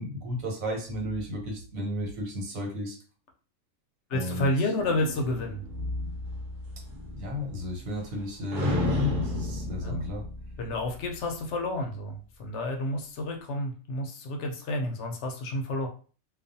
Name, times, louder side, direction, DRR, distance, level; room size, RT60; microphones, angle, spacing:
voice 1, 0.0-3.0 4.1-4.5 7.2-10.2, left 1 dB, 85° right, 0 dB, 1.2 m, -33 dB
voice 2, 4.1-5.6 9.8-10.1 10.6-15.9, left 1 dB, 65° left, 3 dB, 0.8 m, -30 dB
sound 1, 4.8-8.2 8.5-11.2, left 1 dB, 45° right, 0.8 m, -33 dB
2.3 x 2.3 x 2.6 m, 0.39 s
omnidirectional pair, 1.4 m